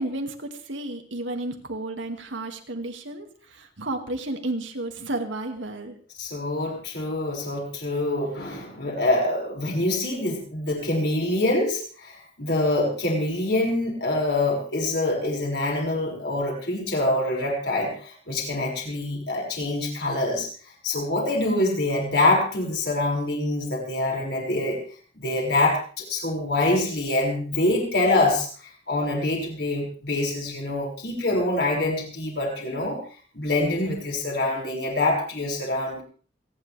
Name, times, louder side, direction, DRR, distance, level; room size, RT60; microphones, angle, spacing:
voice 1, 0.0-6.0, right 2 dB, 85° right, 4 dB, 2.3 m, -32 dB
voice 2, 6.2-20.5 20.8-24.8 25.1-28.5 28.9-33.0 33.3-36.0, left 2 dB, 65° left, -1 dB, 6.2 m, -25 dB
28.5 x 10.5 x 3.5 m, 0.41 s
head